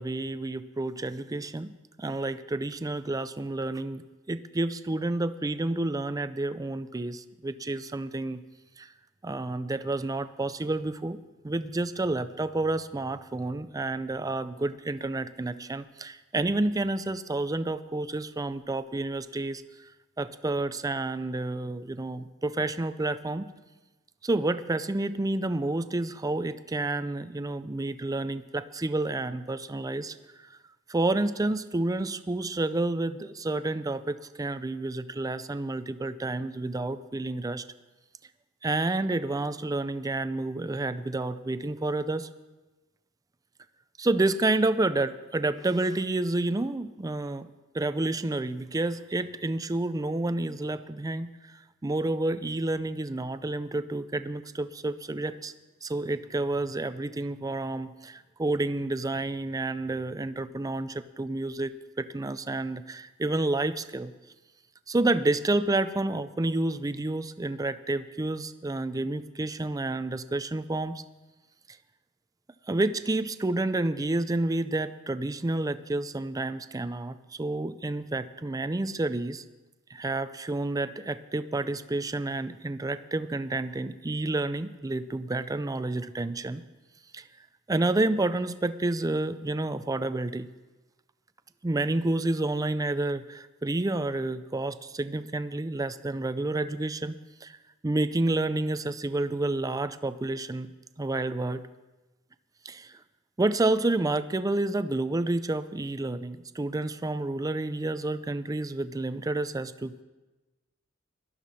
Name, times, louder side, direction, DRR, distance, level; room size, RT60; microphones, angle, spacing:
voice 1, 0.0-8.4 8.8-8.9 9.2-19.6 20.2-23.5 24.2-30.2 30.9-37.6 38.6-42.3 44.0-47.5 47.7-55.5 55.8-64.1 64.9-71.0 72.7-79.4 79.9-86.6 87.1-87.2 87.7-90.5 91.6-97.6 97.8-100.7 101.0-101.6 102.7-102.9 103.4-110.0, right 2 dB, 15° right, 13 dB, 0.4 m, -29 dB
17.5 x 12.0 x 4.2 m, 1.1 s
head